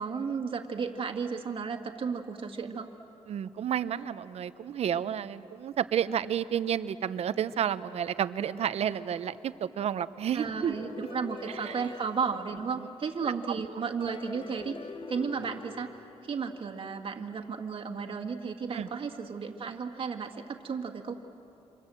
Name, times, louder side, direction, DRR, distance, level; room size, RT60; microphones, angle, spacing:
voice 1, 0.0-2.9 10.3-14.8 15.1-15.9 16.2-21.1, right 5 dB, 50° right, 3 dB, 1.9 m, -34 dB
voice 2, 3.3-10.8 11.5-11.9 13.2-13.3 18.7-18.9, right 9 dB, 65° right, 14 dB, 0.8 m, -31 dB
sound 1, 10.5-13.3 14.0-16.8, left 3 dB, 45° left, 1.4 m, -45 dB
28.5 x 26.5 x 7.7 m, 3.0 s
cardioid pair, 110°, 12 cm